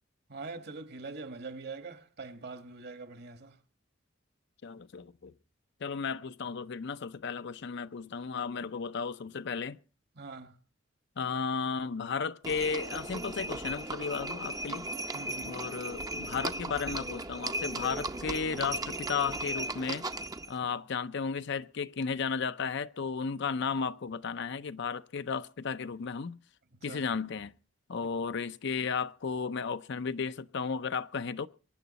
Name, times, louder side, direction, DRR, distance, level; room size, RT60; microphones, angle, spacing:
voice 1, 0.3-3.6 10.1-10.6 15.1-15.6 26.8-27.0, right 3 dB, 55° right, 1.4 m, -43 dB
voice 2, 4.6-5.3 5.8-9.8 11.2-14.9 15.4-20.1 20.5-26.4 26.8-27.5 27.9-31.5, left 5 dB, 60° left, 0.6 m, -34 dB
Livestock farm animals working animals, 12.4-20.5, right 2 dB, 20° right, 0.6 m, -37 dB
23.5 x 9.4 x 4.1 m
head